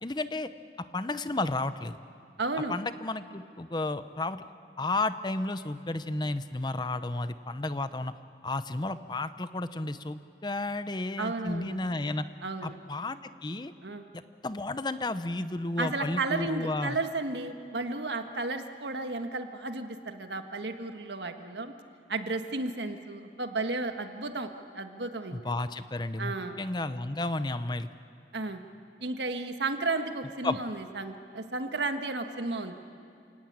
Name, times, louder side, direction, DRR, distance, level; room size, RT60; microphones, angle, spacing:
voice 1, 0.0-0.5 0.9-2.0 2.7-4.4 4.8-8.1 8.4-12.2 12.6-13.7 14.1-17.0 25.3-27.9 30.4-30.6, left 2 dB, 25° left, 12 dB, 0.7 m, -32 dB
voice 2, 2.4-2.8 11.2-11.9 12.4-12.8 13.8-14.0 15.8-21.7 22.1-25.5 26.2-26.6 28.3-28.6 29.0-32.8, right 3 dB, 80° right, 6 dB, 1.6 m, -33 dB
29.0 x 18.0 x 8.8 m, 2.5 s
head